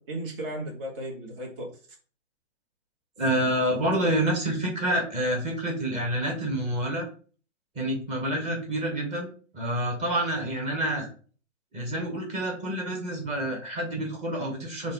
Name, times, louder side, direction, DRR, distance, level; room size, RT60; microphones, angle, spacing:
voice 1, 0.0-1.7 3.2-4.1, right 1 dB, 45° right, -2 dB, 1.7 m, -37 dB
voice 2, 3.2-7.1 7.7-11.1 11.7-14.9, right 1 dB, 20° right, -1 dB, 1.2 m, -28 dB
4.0 x 2.7 x 3.6 m, 0.40 s
hypercardioid pair, 130°, 38 cm